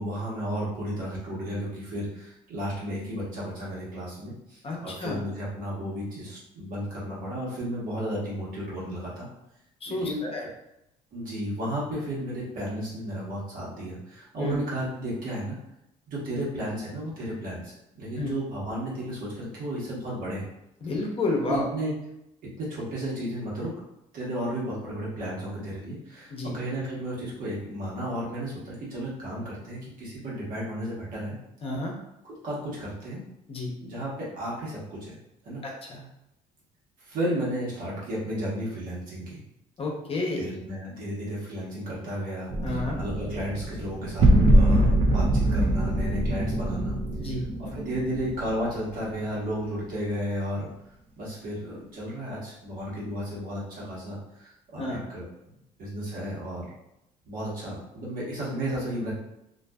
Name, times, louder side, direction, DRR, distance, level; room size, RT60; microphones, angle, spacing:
voice 1, 0.0-9.3 9.9-10.3 11.1-15.6 16.1-20.5 21.5-21.9 22.6-23.8 24.1-31.4 32.2-33.2 33.8-35.2 35.4-35.6 37.0-39.4 40.4-47.0 47.6-50.7 51.2-55.3 55.8-56.8 57.2-59.1, equal, 65° right, -6 dB, 1.2 m, -33 dB
voice 2, 4.6-5.2 9.8-10.5 14.4-14.6 18.2-18.3 20.8-21.7 26.3-26.5 31.6-31.9 33.5-33.7 35.6-36.0 39.8-40.5 42.6-43.0 47.2-47.4 54.8-55.0, left 2 dB, 40° left, -1 dB, 0.7 m, -30 dB
sound 1, 42.5-49.3, right 1 dB, 40° right, 0.5 m, -23 dB
2.5 x 2.5 x 2.2 m, 0.86 s
cardioid pair, 90°, 15 cm